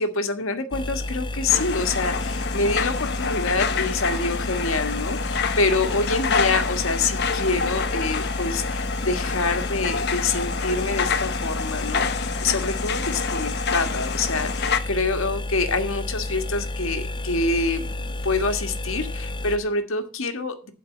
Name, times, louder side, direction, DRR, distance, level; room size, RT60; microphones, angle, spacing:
voice 1, 0.0-20.7, left 3 dB, 70° left, 6 dB, 1.6 m, -26 dB
sound 1, 0.7-19.6, left 1 dB, 20° left, 0.4 m, -31 dB
sound 2, 1.5-14.8, left 5 dB, 50° left, 0.9 m, -28 dB
12.0 x 4.6 x 8.4 m, 0.39 s
head